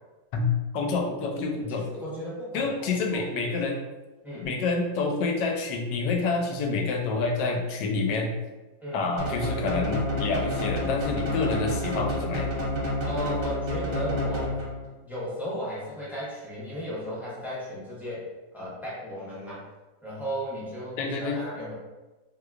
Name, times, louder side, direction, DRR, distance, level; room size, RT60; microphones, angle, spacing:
voice 1, 0.3-1.8 2.5-3.8 4.4-8.3 8.9-12.5 21.0-21.4, left 4 dB, 85° left, 2 dB, 1.2 m, -28 dB
voice 2, 1.7-3.3 4.2-4.5 8.8-9.1 13.1-14.6 15.0-18.3 18.5-19.7 20.0-21.7, equal, ahead, -8 dB, 0.5 m, -35 dB
sound 1, 9.2-14.9, left 1 dB, 90° right, 0.4 m, -29 dB
3.7 x 2.9 x 2.3 m, 1.1 s
omnidirectional pair, 1.8 m